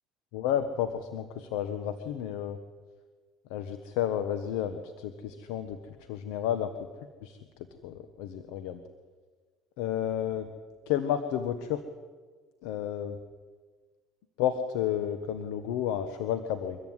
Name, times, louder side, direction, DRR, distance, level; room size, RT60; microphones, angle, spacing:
voice 1, 0.3-2.6 3.5-5.8 6.1-6.9 7.2-7.4 7.8-8.8 9.8-10.5 10.9-11.8 12.6-13.2 14.4-16.8, left 10 dB, 85° left, 9 dB, 1.4 m, -31 dB
23.5 x 15.0 x 9.8 m, 1.4 s
supercardioid pair, 100°, 0 cm